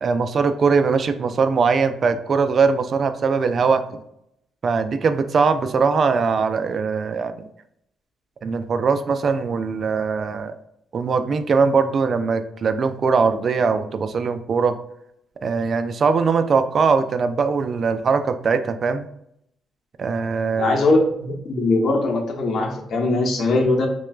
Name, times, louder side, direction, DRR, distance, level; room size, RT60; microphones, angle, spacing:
voice 1, 0.0-4.0 4.6-7.5 8.4-10.6 10.9-14.8 15.4-19.1 20.0-20.8, right 5 dB, 50° right, 10 dB, 0.4 m, -21 dB
voice 2, 20.6-23.9, left 2 dB, 60° left, 1 dB, 1.0 m, -20 dB
6.0 x 2.2 x 2.4 m, 0.76 s
cardioid pair, 90°, 0 cm